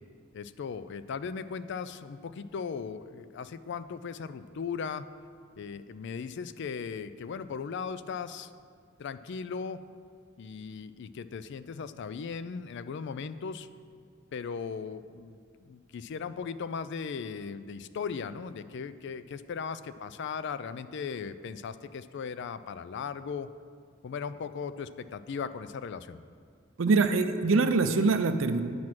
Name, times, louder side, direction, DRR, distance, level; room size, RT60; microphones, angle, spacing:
voice 1, 0.3-5.1 5.6-8.5 9.0-9.8 10.4-13.7 14.3-23.5 24.0-26.2, left 6 dB, 60° left, 13 dB, 0.4 m, -37 dB
voice 2, 26.8-28.6, right 3 dB, 70° right, 9 dB, 0.6 m, -24 dB
9.5 x 6.0 x 6.0 m, 2.2 s
head